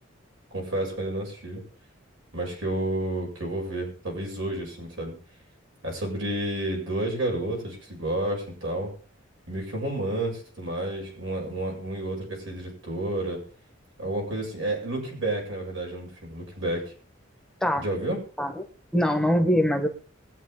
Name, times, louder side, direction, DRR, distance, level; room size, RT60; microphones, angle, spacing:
voice 1, 0.5-1.6 2.3-5.1 5.8-8.9 9.5-13.4 14.0-16.9 17.8-18.2, right 1 dB, 75° right, 0 dB, 7.0 m, -30 dB
voice 2, 18.9-19.9, equal, 5° left, 5 dB, 1.3 m, -23 dB
22.0 x 9.2 x 3.8 m, 0.39 s
head